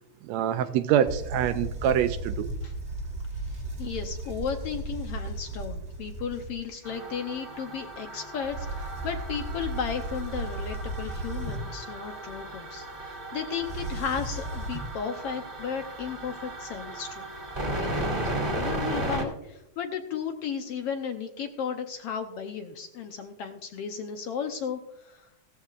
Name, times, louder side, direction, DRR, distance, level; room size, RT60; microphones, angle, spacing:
voice 1, 0.2-2.5, right 10 dB, 80° right, 10 dB, 1.7 m, -25 dB
sound 1, 1.0-6.7 8.4-11.9 13.6-15.0, right 1 dB, 40° right, 1.0 m, -35 dB
voice 2, 3.3-17.3 17.7-25.3, left 7 dB, 70° left, 5 dB, 1.5 m, -35 dB
sound 2, 6.8-19.2, right 1 dB, 20° right, 2.0 m, -35 dB
16.0 x 14.5 x 2.4 m, 0.86 s
omnidirectional pair, 3.3 m